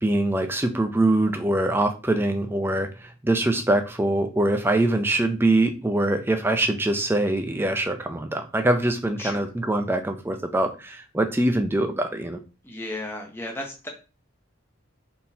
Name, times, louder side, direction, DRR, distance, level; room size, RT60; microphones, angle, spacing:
voice 1, 0.0-12.4, right 1 dB, 10° right, 7 dB, 0.4 m, -23 dB
voice 2, 12.6-13.9, left 1 dB, 10° left, 1 dB, 0.8 m, -34 dB
4.3 x 3.6 x 2.8 m, 0.33 s
head